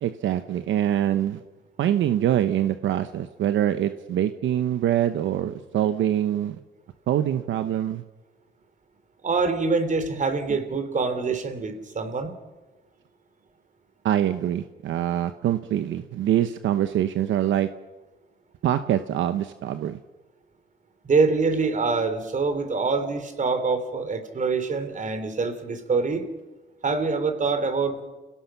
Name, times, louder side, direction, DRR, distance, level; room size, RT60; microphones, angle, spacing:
voice 1, 0.0-1.4 1.8-6.6 7.1-8.0 14.0-17.7 18.6-20.0, right 11 dB, 75° right, 10 dB, 1.0 m, -24 dB
voice 2, 9.2-12.3 21.0-26.2 26.8-28.0, right 4 dB, 40° right, 9 dB, 3.2 m, -25 dB
29.0 x 17.5 x 5.8 m, 1.2 s
cardioid pair, 90°, 20 cm